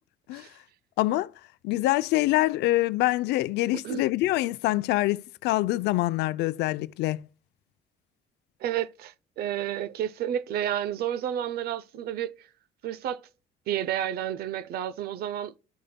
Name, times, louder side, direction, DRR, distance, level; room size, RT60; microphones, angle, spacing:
voice 1, 1.0-1.3 1.6-7.2, left 17 dB, 80° left, 0.5 m, -25 dB
voice 2, 8.6-12.4 12.8-13.2 13.7-15.6, right 10 dB, 70° right, 0.5 m, -31 dB
13.5 x 5.0 x 2.2 m
cardioid pair, 110°, 17 cm